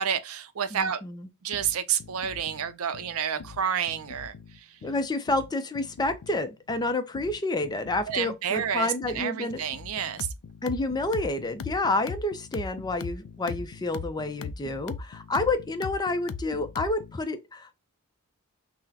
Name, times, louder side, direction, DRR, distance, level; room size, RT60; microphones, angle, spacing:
voice 1, 0.0-1.0 1.4-4.3 8.1-10.3, right 8 dB, 70° right, 0.5 m, -29 dB
voice 2, 0.7-1.3 4.8-9.6 10.6-17.7, left 2 dB, 20° left, 0.4 m, -29 dB
sound 1, 1.5-17.2, left 5 dB, 90° left, 0.4 m, -40 dB
5.8 x 2.1 x 2.8 m
head